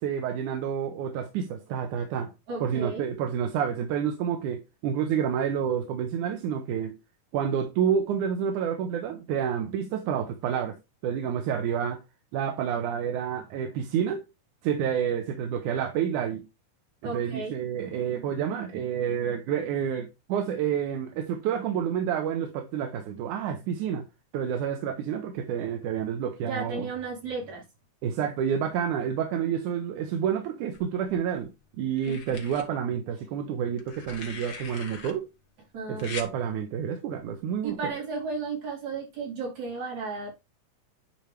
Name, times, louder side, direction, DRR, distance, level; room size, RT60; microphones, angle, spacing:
voice 1, 0.0-2.3 2.6-6.9 7.3-10.8 11.0-12.0 12.3-14.2 14.6-16.4 17.0-24.0 24.3-26.9 28.0-31.5 31.8-35.3 35.9-37.9, right 8 dB, 85° right, 2.4 m, -29 dB
voice 2, 2.5-3.1 17.0-17.6 26.4-27.6 32.1-32.2 35.7-36.1 37.6-40.4, right 4 dB, 70° right, 5.4 m, -34 dB
sound 1, 30.7-31.4 32.0-32.6 33.8-35.1 36.0-36.3 37.7-37.9, left 5 dB, 40° left, 1.6 m, -41 dB
10.5 x 4.5 x 3.3 m
omnidirectional pair, 3.5 m